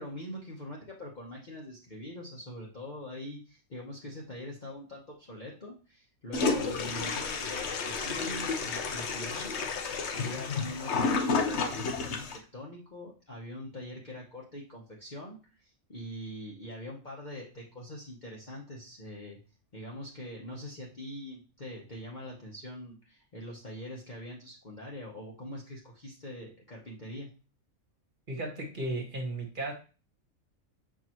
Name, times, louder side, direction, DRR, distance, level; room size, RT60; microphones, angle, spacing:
voice 1, 0.0-19.4 19.7-27.3, left 1 dB, 35° left, -4 dB, 1.1 m, -43 dB
Toilet flush, 6.3-12.4, left 4 dB, 60° left, 1.0 m, -31 dB
voice 2, 28.3-29.7, right 2 dB, 35° right, 1 dB, 1.5 m, -35 dB
6.9 x 4.6 x 3.0 m, 0.34 s
omnidirectional pair, 1.5 m